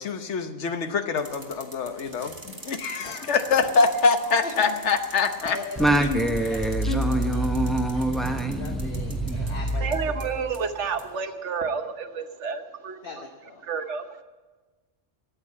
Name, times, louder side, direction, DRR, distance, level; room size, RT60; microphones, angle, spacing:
voice 1, 0.0-5.6 6.0-7.3, left 4 dB, 80° left, 8 dB, 1.3 m, -25 dB
sound 1, 1.2-11.2, right 2 dB, 20° right, 1.6 m, -45 dB
voice 2, 3.0-3.4 3.7-3.9 4.4-4.7 5.5-5.9 6.5-6.6 7.3-7.5 7.9-10.0 13.0-13.6, left 4 dB, 50° left, 3 dB, 1.3 m, -39 dB
Singing, 5.8-10.5, right 1 dB, ahead, 0.7 m, -25 dB
voice 3, 9.8-13.0 13.6-14.2, right 5 dB, 90° right, 7 dB, 1.4 m, -30 dB
14.0 x 8.7 x 8.5 m, 1.2 s
omnidirectional pair, 1.2 m